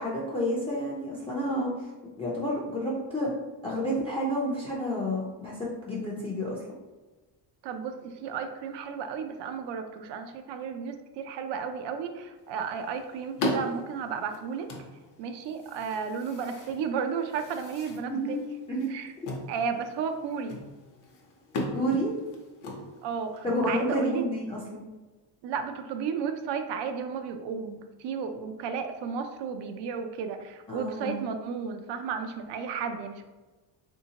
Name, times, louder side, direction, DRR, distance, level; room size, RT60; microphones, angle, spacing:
voice 1, 0.0-1.9 2.2-3.3 3.6-6.6 18.1-18.4 18.7-18.9 21.7-22.1 23.4-24.8 30.7-31.2, equal, 15° left, -5 dB, 0.4 m, -30 dB
voice 2, 7.6-14.7 15.2-18.4 18.9-19.1 19.5-20.6 23.0-24.2 25.4-33.2, right 6 dB, 85° right, 7 dB, 0.5 m, -33 dB
sound 1, 12.4-23.5, left 1 dB, 50° left, 0.7 m, -38 dB
3.4 x 2.7 x 2.8 m, 1.2 s
cardioid pair, 150°, 42 cm